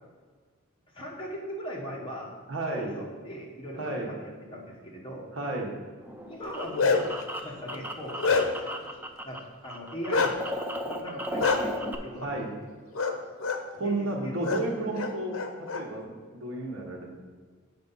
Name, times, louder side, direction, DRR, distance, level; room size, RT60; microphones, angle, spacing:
voice 1, 0.9-2.3 2.6-5.3 6.2-7.1 7.4-8.2 9.2-10.3 10.8-11.7 12.0-12.6 13.8-14.3, equal, 25° left, -3 dB, 1.2 m, -39 dB
voice 2, 2.5-2.9 3.8-4.1 5.4-5.7 12.2-12.5 13.7-17.1, right 2 dB, 65° right, -1 dB, 1.3 m, -32 dB
sound 1, 6.0-9.4 9.6-12.0, equal, 10° right, 0.4 m, -35 dB
Bark, 6.4-7.2 7.7-8.7 10.1-10.3 11.4-11.6 12.9-13.1 13.4-13.6 14.4-14.6 14.9-15.8, left 4 dB, 70° left, 0.7 m, -26 dB
7.3 x 5.4 x 4.1 m, 1.5 s
head